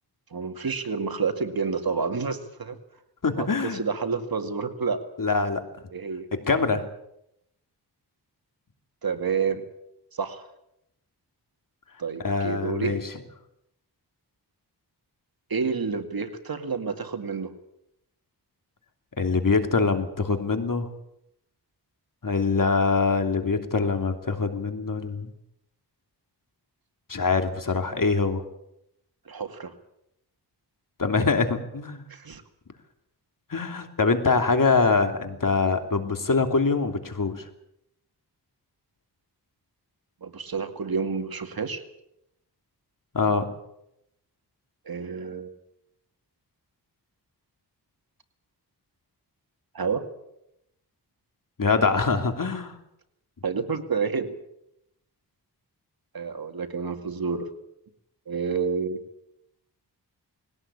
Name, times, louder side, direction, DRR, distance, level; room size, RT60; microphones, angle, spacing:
voice 1, 0.3-2.8 3.3-5.0 5.9-6.3 9.0-9.6 10.1-10.5 12.0-13.0 15.5-17.5 29.3-29.7 32.1-32.4 40.2-41.8 44.9-45.5 49.7-50.1 53.4-54.4 56.1-57.5 58.3-59.0, right 5 dB, 60° right, 7 dB, 2.3 m, -29 dB
voice 2, 3.2-3.8 5.2-5.6 6.5-6.8 12.2-13.0 19.2-20.9 22.2-25.3 27.1-28.4 31.0-32.1 33.5-37.5 43.1-43.5 51.6-52.8, left 4 dB, 50° left, 6 dB, 3.0 m, -24 dB
20.5 x 17.5 x 8.6 m, 0.80 s
cardioid pair, 70°, 41 cm